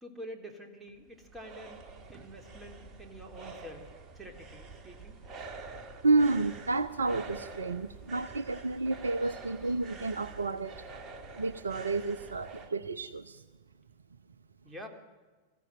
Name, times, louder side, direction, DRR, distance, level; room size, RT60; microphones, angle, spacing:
voice 1, 0.0-1.8 2.1-5.2 14.6-14.9, equal, 10° right, 4 dB, 3.5 m, -47 dB
sound 1, 0.9-12.7, right 3 dB, 30° right, 2.1 m, -47 dB
voice 2, 6.0-10.8 11.3-13.4, right 3 dB, 75° right, 16 dB, 0.7 m, -30 dB
24.5 x 15.0 x 9.1 m, 1.3 s
figure-of-eight pair, 90°, 0 cm